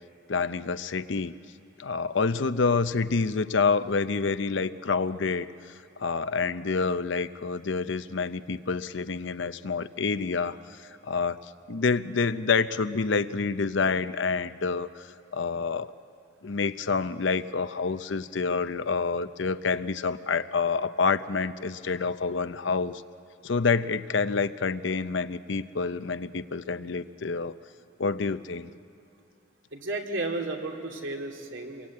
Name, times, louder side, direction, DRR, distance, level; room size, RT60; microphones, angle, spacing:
voice 1, 0.3-1.4 1.8-5.5 6.0-10.6 11.0-11.4 11.7-15.0 15.3-15.9 16.4-23.0 23.4-27.5 28.0-28.7, left 4 dB, 65° left, 13 dB, 0.7 m, -27 dB
voice 2, 29.7-31.9, right 2 dB, 75° right, 2 dB, 2.8 m, -33 dB
28.0 x 23.0 x 8.5 m, 2.5 s
head